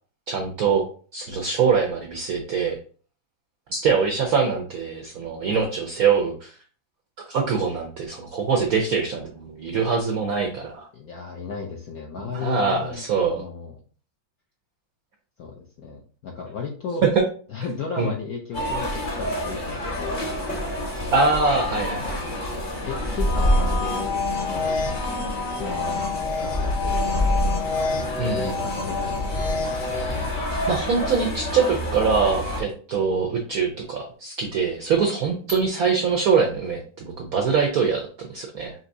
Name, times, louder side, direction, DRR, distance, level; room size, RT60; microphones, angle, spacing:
voice 1, 0.3-0.8 1.1-2.8 3.7-6.5 7.3-10.9 12.3-13.4 17.2-17.3 18.0-18.1 21.1-22.2 28.2-28.5 30.7-38.7, right 5 dB, 75° right, 1 dB, 0.8 m, -23 dB
voice 2, 10.9-13.7 15.4-17.0 17.5-20.7 22.0-22.2 22.5-24.8 25.4-26.1 26.4-27.2 28.3-29.5, left 5 dB, 70° left, -1 dB, 0.8 m, -35 dB
sound 1, 18.5-32.6, equal, 45° left, 0.6 m, -27 dB
sound 2, 23.0-30.4, left 4 dB, 90° left, 2.1 m, -28 dB
5.6 x 2.9 x 2.6 m, 0.41 s
omnidirectional pair, 2.3 m